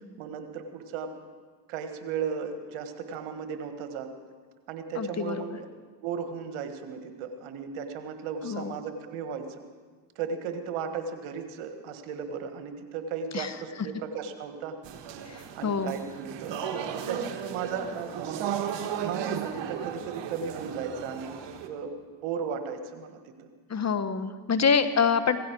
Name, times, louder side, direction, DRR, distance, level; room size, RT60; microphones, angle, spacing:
voice 1, 0.2-1.1 1.7-4.1 4.7-5.7 6.0-9.4 10.1-14.8 15.0-16.5 16.9-21.4 21.7-21.9 22.2-23.5, right 6 dB, 75° right, 7 dB, 1.6 m, -35 dB
voice 2, 4.9-5.4 8.4-8.8 13.3-13.5 15.3-15.9 23.7-25.4, left 6 dB, 35° left, 11 dB, 1.1 m, -26 dB
sound 1, 14.8-21.7, right 8 dB, 60° right, 1.6 m, -35 dB
17.0 x 15.0 x 4.6 m, 1.5 s
supercardioid pair, 65°, 48 cm